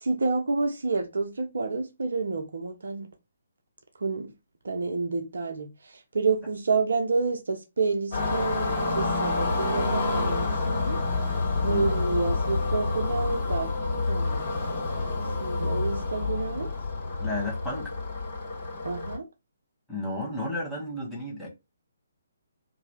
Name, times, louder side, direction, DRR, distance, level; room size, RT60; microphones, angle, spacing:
voice 1, 0.0-3.1 4.0-4.3 4.6-11.0 11.6-13.7 14.1-14.5 15.4-16.7 18.8-19.3, right 4 dB, 60° right, 0.6 m, -29 dB
sound 1, 8.1-19.2, left 3 dB, 45° left, 1.9 m, -28 dB
voice 2, 17.2-17.9 19.9-21.5, left 2 dB, 5° left, 1.2 m, -32 dB
2.8 x 2.6 x 3.0 m
figure-of-eight pair, 135°, 0 cm